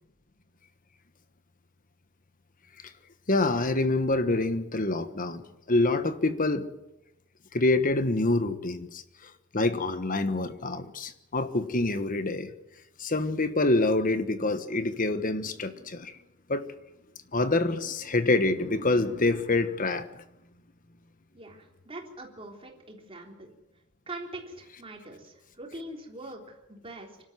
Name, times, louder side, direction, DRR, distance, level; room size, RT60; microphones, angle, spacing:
voice 1, 3.3-6.7 7.5-12.5 13.0-16.1 16.5-16.7 17.3-20.2, left 2 dB, 40° left, 1.2 m, -26 dB
voice 2, 21.3-23.5 24.1-27.2, right 2 dB, 25° right, 3.6 m, -43 dB
25.0 x 13.0 x 9.3 m
head